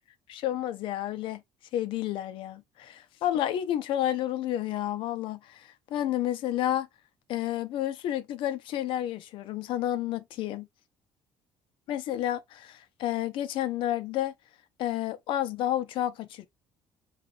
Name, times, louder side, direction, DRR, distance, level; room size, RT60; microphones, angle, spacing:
voice 1, 0.3-1.4 1.7-5.6 5.9-6.9 7.3-10.7 11.9-14.3 14.8-16.5, left 12 dB, 70° left, 0.6 m, -30 dB
5.9 x 2.4 x 2.4 m
cardioid pair, 125°, 9 cm